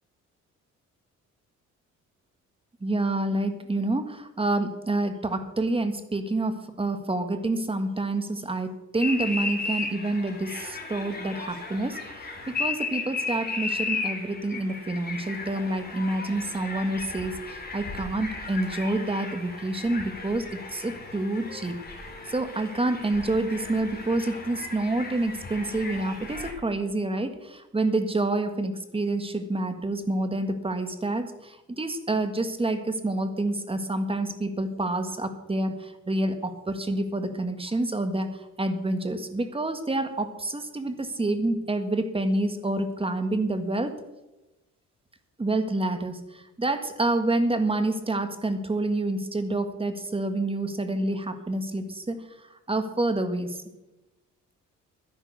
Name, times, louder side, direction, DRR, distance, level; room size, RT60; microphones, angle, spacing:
voice 1, 2.8-21.8 22.3-44.0 45.4-53.6, right 2 dB, 20° right, 9 dB, 1.6 m, -28 dB
sound 1, 9.0-26.5, left 4 dB, 30° left, 3.5 m, -35 dB
12.0 x 10.5 x 6.7 m, 1.0 s
cardioid pair, 90°, 30 cm